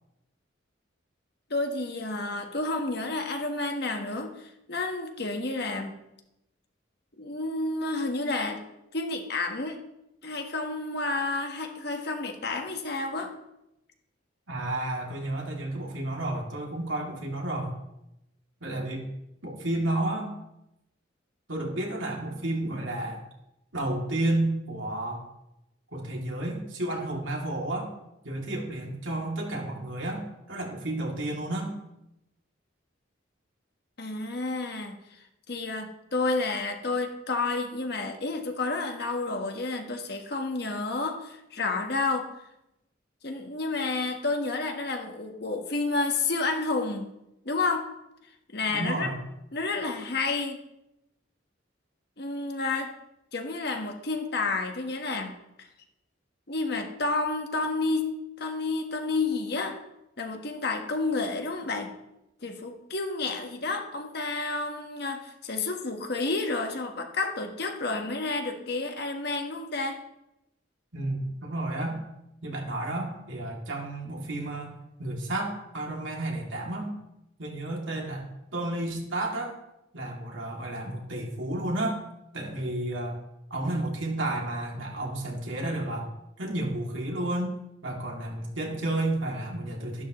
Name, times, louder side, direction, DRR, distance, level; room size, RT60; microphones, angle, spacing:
voice 1, 1.5-5.9 7.2-8.6 8.9-9.8 10.2-13.3 34.0-35.0 35.5-42.3 43.2-47.1 47.4-47.9 48.5-49.1 49.5-50.6 52.2-52.9 53.3-55.3 55.6-55.7 56.5-59.8 60.2-61.9 62.4-70.0, left 3 dB, 55° left, 4 dB, 1.5 m, -30 dB
voice 2, 14.5-17.7 18.6-19.0 19.4-20.3 21.5-23.2 23.7-25.2 25.9-27.9 28.2-31.7 48.7-49.2 70.9-72.0 72.4-76.9 77.4-79.5 79.9-82.0 82.3-83.2 83.5-86.1 86.4-87.5 87.8-90.0, right 1 dB, 80° right, -1 dB, 2.9 m, -31 dB
13.0 x 11.5 x 3.2 m, 0.87 s
head